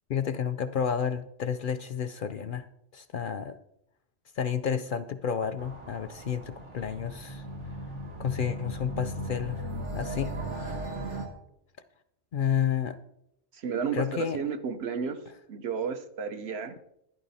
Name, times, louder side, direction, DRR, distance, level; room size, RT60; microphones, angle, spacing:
voice 1, 0.1-2.7 2.9-3.6 4.3-7.5 8.2-10.3 12.3-13.0 13.9-14.4, left 8 dB, 55° left, 12 dB, 0.6 m, -31 dB
sound 1, 5.6-11.3, right 1 dB, 90° right, 2.2 m, -37 dB
voice 2, 13.5-15.2 15.5-16.7, right 6 dB, 65° right, 8 dB, 1.1 m, -32 dB
12.0 x 11.0 x 4.2 m, 0.79 s
omnidirectional pair, 1.2 m